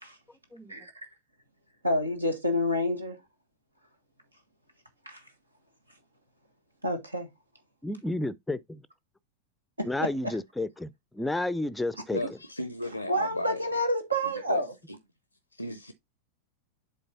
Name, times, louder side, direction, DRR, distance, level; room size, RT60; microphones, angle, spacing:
voice 1, 1.8-3.2 5.0-5.2 6.8-7.3 9.8-10.3 13.1-14.7, equal, 85° right, 1.5 m, -28 dB
voice 2, 7.8-8.8 9.8-12.2, left 2 dB, 5° left, 0.5 m, -31 dB
voice 3, 12.1-13.7 14.5-14.6 14.9-15.0 15.5-15.9, left 1 dB, 85° left, 0.5 m, -35 dB
7.7 x 4.1 x 3.9 m
figure-of-eight pair, 90°, 0 cm